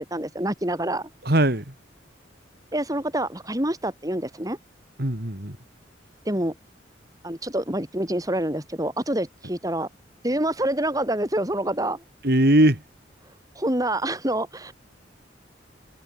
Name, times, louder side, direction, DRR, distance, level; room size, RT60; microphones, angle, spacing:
voice 1, 0.0-1.1 2.7-4.6 6.3-6.6 7.2-9.9 10.2-12.0 13.6-14.7, right 1 dB, 20° right, 5.3 m, -26 dB
voice 2, 1.2-1.7 5.0-5.6 12.2-12.8, right 1 dB, 55° right, 3.5 m, -20 dB
head